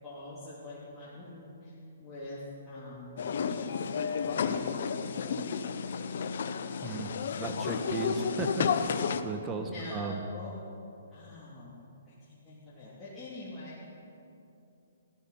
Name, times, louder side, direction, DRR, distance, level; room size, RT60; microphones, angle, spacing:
voice 1, 0.0-3.2 3.5-6.2 7.3-8.4 9.6-10.6 11.1-11.8 12.1-13.8, left 2 dB, 10° left, -11 dB, 2.9 m, -45 dB
sound 1, 3.2-9.2, left 6 dB, 60° left, 0.8 m, -32 dB
voice 2, 7.4-10.2, right 3 dB, 20° right, 4 dB, 1.2 m, -36 dB
15.5 x 13.0 x 5.6 m, 2.8 s
hypercardioid pair, 140°, 0 cm